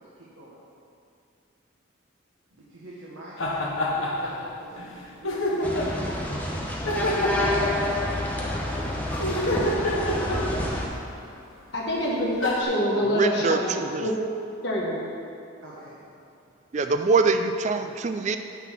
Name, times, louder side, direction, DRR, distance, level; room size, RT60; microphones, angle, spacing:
voice 1, 0.2-0.6 2.5-6.2 8.3-10.2 15.6-16.0, right 1 dB, 85° right, -7 dB, 1.3 m, -44 dB
sound 1, 3.4-4.5 4.8-4.9 5.2-6.0 6.9-8.3 9.1-11.0 11.9-12.0 12.4-12.6, left 1 dB, 75° left, 1.1 m, -27 dB
sound 2, 5.6-10.9, left 1 dB, 10° left, 0.8 m, -28 dB
voice 2, 11.7-14.1 14.6-14.9, equal, 55° left, -4 dB, 1.1 m, -26 dB
voice 3, 13.1-14.0 16.7-18.4, right 4 dB, 35° right, 8 dB, 0.4 m, -24 dB
9.1 x 4.1 x 7.3 m, 2.5 s
head